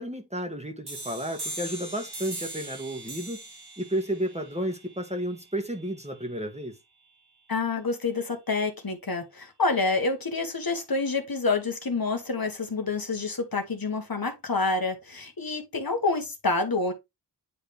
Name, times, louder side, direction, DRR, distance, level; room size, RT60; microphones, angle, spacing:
voice 1, 0.0-3.4 3.8-6.7, right 1 dB, 15° right, 1.4 m, -32 dB
sound 1, 0.9-6.3, right 2 dB, 70° right, 1.8 m, -41 dB
voice 2, 7.5-16.9, left 3 dB, 55° left, 1.4 m, -28 dB
9.4 x 3.3 x 3.4 m
wide cardioid pair, 65°, 41 cm